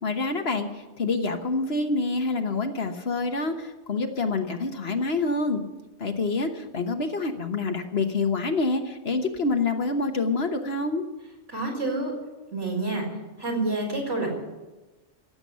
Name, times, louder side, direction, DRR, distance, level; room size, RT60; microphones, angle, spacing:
voice 1, 0.0-5.6 6.0-11.0, left 3 dB, 55° left, 5 dB, 1.4 m, -27 dB
voice 2, 11.5-12.1 12.5-13.1 13.4-14.3, right 2 dB, 70° right, -1 dB, 4.9 m, -28 dB
16.5 x 7.9 x 9.7 m, 1.1 s
omnidirectional pair, 1.3 m